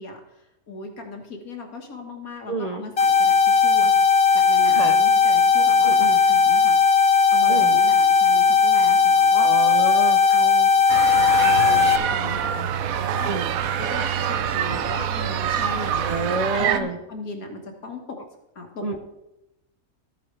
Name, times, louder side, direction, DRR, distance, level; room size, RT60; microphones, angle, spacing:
voice 1, 0.0-4.1 4.3-6.8 7.3-9.5 10.3-16.1 16.5-18.2 18.6-19.0, left 3 dB, 80° left, 3 dB, 2.0 m, -37 dB
voice 2, 2.5-2.9 4.7-5.0 5.8-6.2 7.5-7.8 9.4-10.2 13.2-13.5 16.0-17.0 18.8-19.0, right 3 dB, 55° right, 5 dB, 0.4 m, -28 dB
sound 1, 3.0-12.0, left 5 dB, 55° left, 0.4 m, -17 dB
sound 2, 10.9-16.8, right 9 dB, 80° right, 1.1 m, -25 dB
13.5 x 8.5 x 3.3 m, 0.94 s
omnidirectional pair, 1.5 m